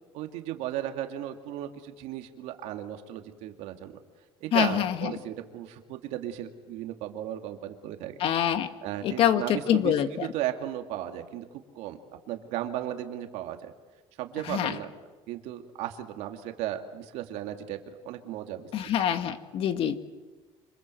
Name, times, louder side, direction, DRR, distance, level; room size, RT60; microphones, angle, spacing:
voice 1, 0.1-3.9 4.4-8.2 8.8-9.9 10.2-11.5 11.8-12.0 12.3-13.7 14.2-14.9 15.3-17.8 18.0-18.6, right 12 dB, 80° right, 5 dB, 2.5 m, -35 dB
voice 2, 4.5-5.1 8.2-8.7 9.0-10.3 14.5-14.7 18.7-19.9, left 10 dB, 55° left, 9 dB, 2.0 m, -25 dB
27.0 x 26.5 x 7.9 m, 1.3 s
cardioid pair, 145°, 11 cm